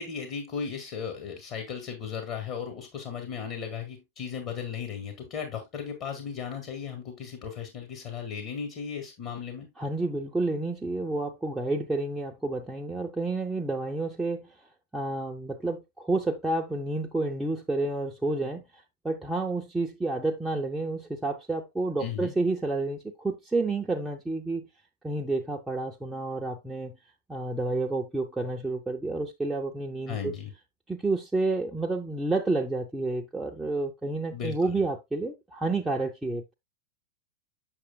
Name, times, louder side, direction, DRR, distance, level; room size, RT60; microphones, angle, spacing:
voice 1, 0.0-9.7 22.0-22.3 30.1-30.5 34.3-34.8, left 7 dB, 40° left, 1.5 m, -36 dB
voice 2, 9.8-14.5 14.9-24.7 25.0-26.9 27.3-30.3 30.9-36.5, right 2 dB, 5° right, 0.7 m, -30 dB
7.1 x 6.7 x 2.2 m
figure-of-eight pair, 90°, 0 cm